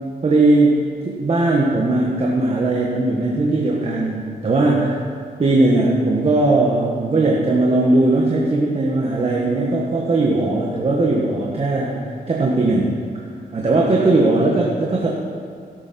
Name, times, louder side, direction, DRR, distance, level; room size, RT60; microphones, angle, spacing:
voice 1, 0.2-5.0 5.4-13.0 13.5-15.1, right 2 dB, 40° right, -2 dB, 1.5 m, -18 dB
17.0 x 8.5 x 4.5 m, 2.4 s
cardioid pair, 105°, 15 cm